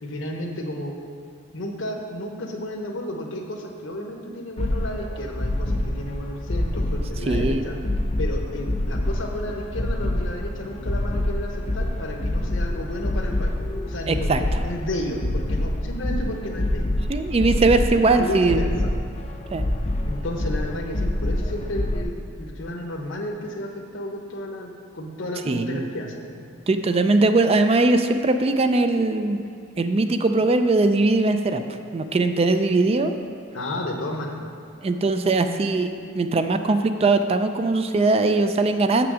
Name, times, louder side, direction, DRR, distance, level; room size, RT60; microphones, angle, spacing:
voice 1, 0.0-0.9 1.5-7.8 8.2-13.6 13.8-17.0 18.2-18.9 20.0-26.4 33.5-34.5, left 1 dB, 70° left, 2 dB, 1.0 m, -32 dB
sound 1, 4.6-22.0, left 1 dB, 35° left, 0.5 m, -26 dB
voice 2, 7.3-7.7 14.1-14.4 17.1-18.6 19.5-19.6 25.5-25.9 26.7-29.4 29.8-31.6 31.9-33.1 34.8-39.1, right 3 dB, 30° right, 8 dB, 0.4 m, -20 dB
7.1 x 6.0 x 6.1 m, 2.3 s
head